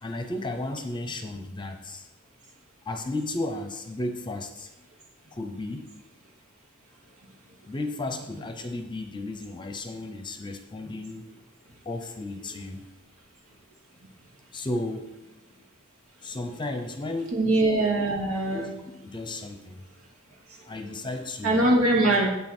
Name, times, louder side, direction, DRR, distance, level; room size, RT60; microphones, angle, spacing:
voice 1, 0.0-2.1 2.8-4.9 5.3-5.9 7.6-11.3 11.7-12.8 14.5-15.4 16.2-17.4 18.5-18.7 19.0-19.8 20.7-21.6, left 2 dB, 20° left, 6 dB, 0.8 m, -34 dB
voice 2, 17.3-18.7 21.4-22.3, right 2 dB, 70° right, -1 dB, 2.5 m, -22 dB
9.1 x 8.4 x 4.5 m, 0.93 s
head